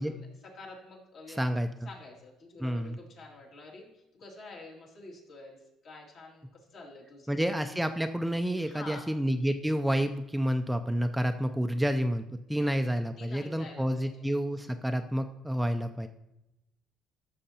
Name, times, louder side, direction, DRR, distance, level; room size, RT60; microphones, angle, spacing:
voice 1, 0.0-1.4 1.8-7.4 8.6-9.2 12.6-12.7 13.2-14.2, left 3 dB, 60° left, -2 dB, 2.4 m, -48 dB
voice 2, 1.4-1.7 2.6-3.0 7.3-12.2 12.5-16.1, equal, 5° right, 7 dB, 0.4 m, -29 dB
13.0 x 6.5 x 2.8 m, 0.90 s
cardioid pair, 100°, 0 cm